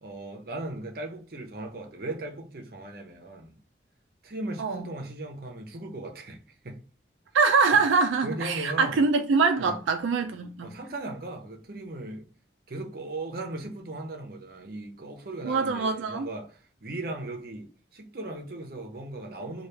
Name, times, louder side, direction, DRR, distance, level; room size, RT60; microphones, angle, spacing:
voice 1, 0.0-3.6 4.2-6.8 8.2-9.0 9.6-9.8 10.6-12.3 12.7-19.7, right 2 dB, 50° right, 0.7 m, -38 dB
voice 2, 7.3-10.7 15.4-16.3, right 4 dB, 85° right, 0.3 m, -24 dB
3.1 x 2.3 x 3.2 m
head